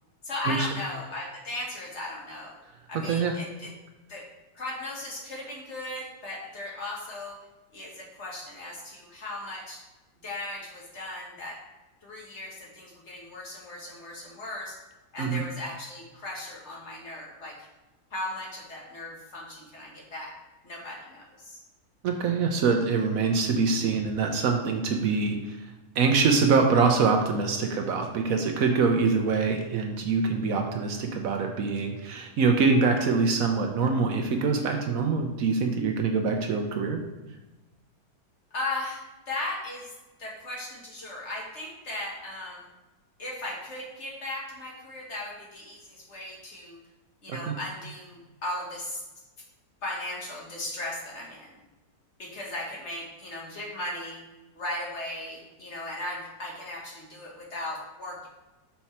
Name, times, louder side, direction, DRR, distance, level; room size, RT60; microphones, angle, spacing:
voice 1, 0.2-2.6 2.9-3.7 4.1-4.3 4.5-7.4 7.7-9.8 10.2-11.6 12.0-14.8 15.1-17.7 18.1-20.3 20.6-21.6 38.5-39.9 40.2-42.7 43.2-46.8 47.2-49.0 49.8-51.6 52.2-54.2 54.5-58.3, left 1 dB, 50° left, -3 dB, 1.5 m, -37 dB
voice 2, 22.0-25.6 25.9-37.0 47.3-47.6, right 4 dB, 65° right, 4 dB, 1.0 m, -24 dB
5.9 x 4.5 x 4.2 m, 1.1 s
omnidirectional pair, 1.7 m